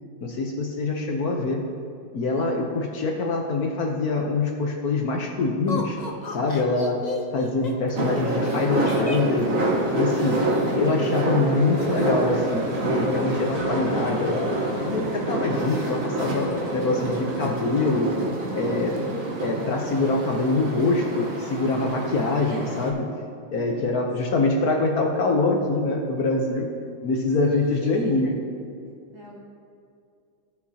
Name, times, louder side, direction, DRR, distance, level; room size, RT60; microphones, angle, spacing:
voice 1, 0.2-1.6 2.1-6.0 6.3-7.0 7.3-9.6 9.9-10.4 10.7-14.5 14.8-18.1 18.5-19.0 19.4-23.1 23.5-26.7 27.0-28.3, left 3 dB, 60° left, 1 dB, 1.1 m, -24 dB
voice 2, 2.3-3.0 18.8-19.3 23.5-24.5 27.4-28.3 29.1-29.4, right 1 dB, 80° right, -6 dB, 3.2 m, -40 dB
Laughter, 5.7-10.7 11.8-12.6 12.9-13.0 13.4-13.8, left 2 dB, 80° left, 0.3 m, -35 dB
sound 1, 8.0-22.9, right 1 dB, 50° right, 1.3 m, -27 dB
16.5 x 6.8 x 2.8 m, 2.4 s
omnidirectional pair, 2.2 m